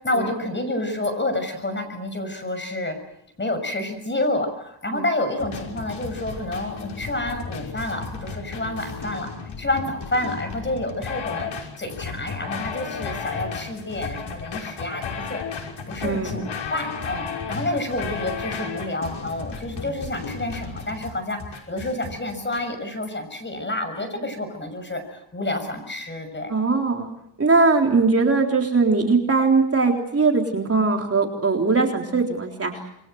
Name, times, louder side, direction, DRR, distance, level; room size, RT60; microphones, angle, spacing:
voice 1, 0.0-3.0 3.4-9.3 9.6-11.5 11.8-21.4 21.7-26.5, left 1 dB, 25° left, 7 dB, 6.5 m, -29 dB
sound 1, 5.4-22.6, left 5 dB, 75° left, 5.8 m, -34 dB
voice 2, 16.0-16.3 26.5-27.1 27.4-32.7, right 4 dB, 30° right, 2 dB, 3.8 m, -20 dB
28.0 x 23.0 x 7.9 m, 0.79 s
wide cardioid pair, 125°, 47 cm